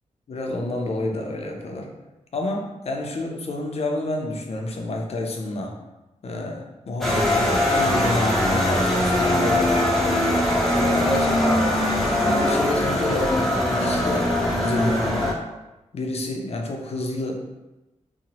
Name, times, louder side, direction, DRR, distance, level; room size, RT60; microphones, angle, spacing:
voice 1, 0.3-1.9 2.3-5.7 6.2-9.9 10.7-11.7 12.3-15.4 15.9-17.5, left 2 dB, 55° left, 2 dB, 0.5 m, -29 dB
sound 1, 7.0-15.3, left 1 dB, ahead, 0.5 m, -21 dB
2.9 x 2.0 x 2.8 m, 1.0 s
wide cardioid pair, 95°, 13 cm